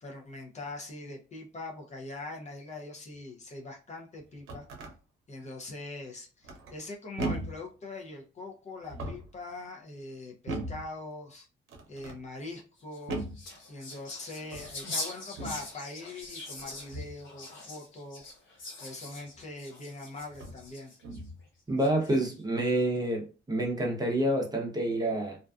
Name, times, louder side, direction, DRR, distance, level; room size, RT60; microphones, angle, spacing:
voice 1, 0.0-4.7 5.3-11.5 11.9-13.2 13.7-18.2 18.5-20.9, left 2 dB, 35° left, 0.6 m, -42 dB
sound 1, 4.2-4.9 6.4-6.8 7.2-7.7 8.8-9.4 10.5-10.9 11.7-12.2 13.1-13.5 14.4-14.8 15.4-15.7 16.9-17.2 19.3-19.4 20.3-20.6 21.0-21.4, right 2 dB, 80° right, 0.6 m, -37 dB
sound 2, 12.8-21.2 21.8-22.4, left 2 dB, 80° left, 0.9 m, -42 dB
voice 2, 21.7-25.4, right 1 dB, 20° right, 0.7 m, -28 dB
2.4 x 2.3 x 2.3 m
cardioid pair, 90°, 20 cm